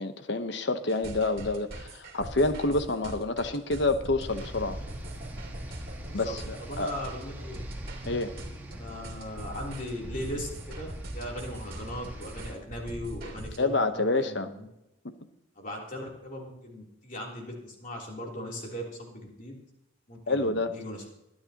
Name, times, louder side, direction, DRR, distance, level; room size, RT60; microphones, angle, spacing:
voice 1, 0.0-4.8 6.1-6.9 8.1-8.3 13.6-14.5 20.3-20.7, left 2 dB, 60° left, 9 dB, 1.0 m, -28 dB
sound 1, 0.9-13.6, right 1 dB, 50° right, 2.4 m, -41 dB
sound 2, 4.3-12.5, right 1 dB, 10° right, 1.7 m, -44 dB
voice 2, 6.1-7.7 8.7-14.7 15.6-19.6 20.1-21.1, equal, 40° left, -1 dB, 3.4 m, -39 dB
23.5 x 9.8 x 3.0 m, 0.91 s
head